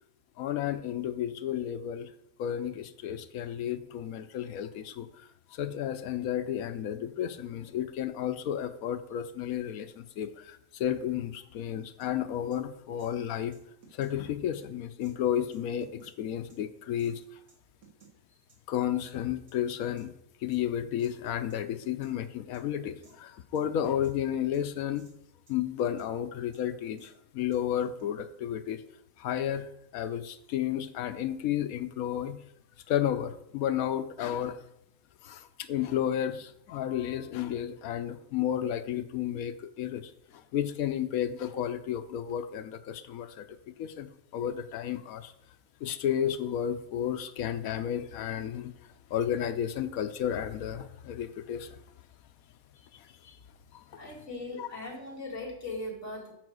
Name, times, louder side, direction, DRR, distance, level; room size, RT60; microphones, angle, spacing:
voice 1, 0.4-2.1 2.4-13.5 13.9-17.2 18.7-20.1 20.4-25.0 25.5-28.8 29.2-32.4 32.9-34.6 35.2-45.3 45.8-48.7 49.1-51.7 52.9-53.4 53.7-53.8 54.6-54.7, left 10 dB, 80° left, 11 dB, 1.1 m, -32 dB
sound 1, 12.0-12.1 12.5-12.6 13.0-13.1 13.5-14.2 14.5-14.6 15.0-15.1 15.5-16.1 16.5-16.6 17.0-17.1 17.5-18.1 18.5-18.6 19.0-19.1 19.5-20.1 20.5-20.6 21.0-21.1 21.5-21.6 21.8-22.2 22.5-22.6 23.0-23.2 23.6-24.2 24.5-24.6 25.0-25.1 25.5-26.1 26.5-26.6 27.0-27.1 27.5-28.0, right 5 dB, 75° right, 2.1 m, -58 dB
voice 2, 54.0-56.3, left 2 dB, 55° left, 0 dB, 2.3 m, -39 dB
7.9 x 4.8 x 6.2 m, 0.77 s
omnidirectional pair, 1.5 m